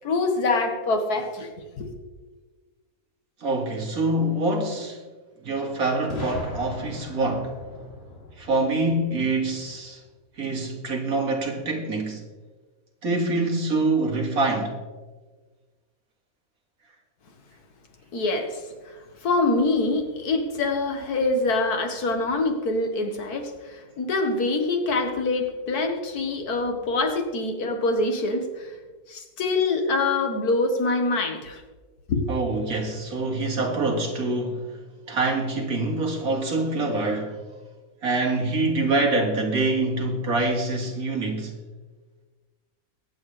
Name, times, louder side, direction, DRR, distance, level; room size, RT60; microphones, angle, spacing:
voice 1, 0.0-1.5 1.8-1.9 18.1-19.0 19.2-28.8 29.1-31.6 32.1-32.2, left 3 dB, 85° left, 1.9 m, -25 dB
voice 2, 3.4-5.0 5.4-7.5 8.4-10.0 10.4-12.2 13.0-14.8 32.3-34.8 35.1-37.4 38.0-41.6, right 2 dB, 70° right, 2.3 m, -25 dB
Boom, 6.1-9.9, left 1 dB, 40° left, 3.0 m, -39 dB
22.5 x 8.4 x 3.3 m
omnidirectional pair, 1.6 m